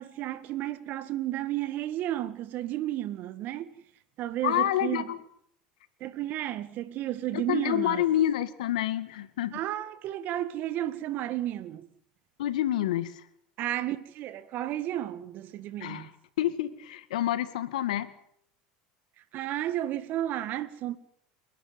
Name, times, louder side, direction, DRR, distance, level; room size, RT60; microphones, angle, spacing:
voice 1, 0.0-3.7 4.2-5.1 6.0-8.0 9.5-11.8 13.6-16.1 19.3-21.0, right 13 dB, 50° right, 1.8 m, -32 dB
voice 2, 4.4-5.2 7.3-9.6 12.4-13.2 15.8-16.1 16.4-18.1, left 12 dB, 85° left, 1.9 m, -28 dB
29.0 x 11.5 x 9.7 m
supercardioid pair, 110°, 4 cm